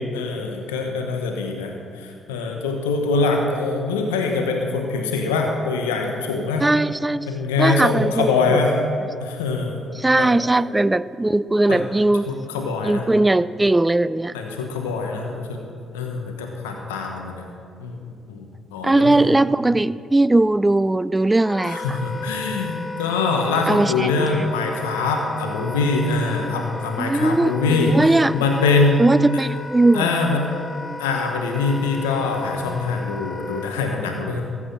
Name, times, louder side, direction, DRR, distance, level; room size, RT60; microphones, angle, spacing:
voice 1, 0.1-6.6 7.3-8.7 9.2-9.8 10.2-10.3 11.7-11.8 12.3-13.0 14.3-15.6 15.9-17.5 17.8-18.0 18.3-19.3 21.7-29.0 29.9-30.5 31.0-34.4, left 4 dB, 90° left, 2 dB, 1.1 m, -23 dB
voice 2, 6.6-7.3 7.6-8.6 10.0-12.3 12.8-14.4 18.8-22.0 23.7-24.5 27.0-28.4 29.0-30.1, right 2 dB, 20° right, 17 dB, 0.4 m, -19 dB
Wind instrument woodwind instrument, 21.4-33.7, left 3 dB, 20° left, 1.1 m, -35 dB
14.5 x 6.2 x 7.4 m, 2.5 s
hypercardioid pair, 50°, 0 cm